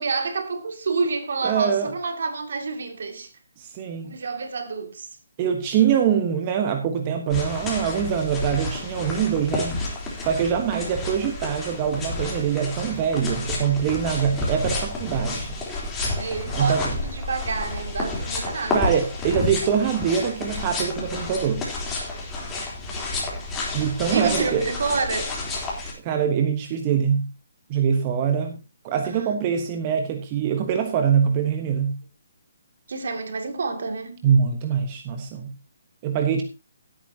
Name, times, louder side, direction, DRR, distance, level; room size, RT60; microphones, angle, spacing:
voice 1, 0.0-3.3 4.0-5.1 16.1-18.9 24.1-25.3 29.0-29.4 32.9-34.2, right 4 dB, 65° right, 2.5 m, -28 dB
voice 2, 1.4-1.9 3.6-4.1 5.4-9.8 10.2-15.6 16.5-16.9 18.7-21.7 23.7-24.6 26.0-27.3 27.7-28.6 28.8-32.0 34.2-35.5 36.0-36.4, right 7 dB, 30° right, 1.3 m, -23 dB
sound 1, 7.3-25.9, left 2 dB, 15° left, 3.6 m, -30 dB
16.5 x 8.9 x 2.9 m
hypercardioid pair, 145°, 0 cm